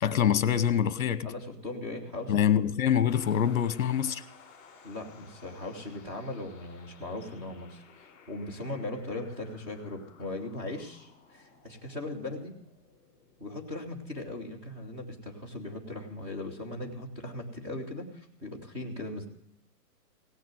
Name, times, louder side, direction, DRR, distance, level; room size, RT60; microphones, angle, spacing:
voice 1, 0.0-1.3 2.3-4.2, left 9 dB, 55° left, 1.0 m, -25 dB
voice 2, 1.2-2.6 4.8-12.5 13.4-19.3, left 2 dB, 10° right, 1.6 m, -39 dB
sound 1, 3.1-14.7, left 5 dB, 25° left, 3.1 m, -56 dB
17.5 x 6.7 x 9.1 m
hypercardioid pair, 180°, 49 cm